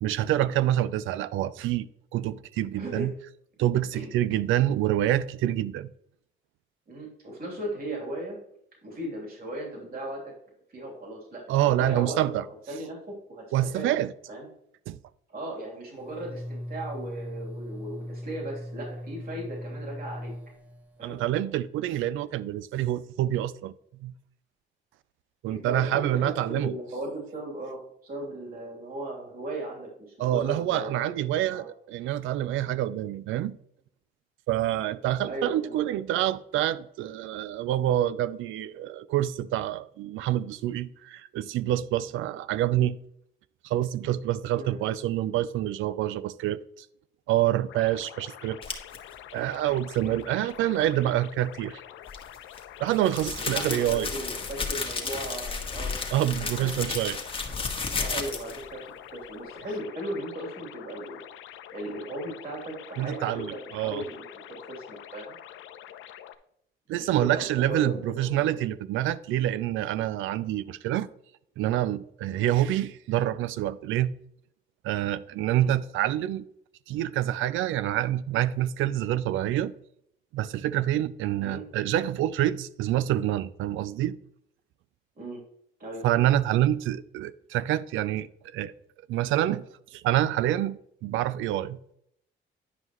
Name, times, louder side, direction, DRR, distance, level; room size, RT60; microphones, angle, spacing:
voice 1, 0.0-1.9 2.1-3.1 3.6-5.9 11.5-12.5 13.5-14.1 14.9-15.0 21.0-23.7 24.0-24.1 25.4-26.7 30.2-33.6 34.5-43.0 43.6-46.9 47.3-48.6 49.3-51.8 52.8-54.1 56.1-57.2 63.0-64.0 66.9-71.1 71.6-74.1 74.8-76.5 76.9-79.7 80.3-84.2 86.0-88.7 89.1-89.7 89.9-91.8, right 13 dB, 85° right, 0.4 m, -27 dB
voice 2, 2.7-3.1 3.9-4.1 6.9-8.4 8.8-10.2 10.7-12.2 12.7-13.9 14.3-14.5 15.3-20.3 21.0-21.2 25.4-31.1 31.5-31.6 35.2-35.8 44.5-44.8 50.0-50.2 53.4-56.0 56.4-56.7 58.0-61.2 61.7-65.3 66.9-68.6 72.4-72.6 75.5-75.7 81.4-81.6 85.1-85.4 85.8-86.1, right 1 dB, 50° right, 3.1 m, -37 dB
sound 1, 16.0-21.3, equal, 5° right, 1.0 m, -39 dB
sound 2, 47.7-66.4, left 11 dB, 80° left, 0.6 m, -46 dB
sound 3, 48.6-49.0 52.1-58.6, left 4 dB, 25° left, 1.4 m, -32 dB
9.8 x 5.5 x 3.0 m
cardioid pair, 90°, 20 cm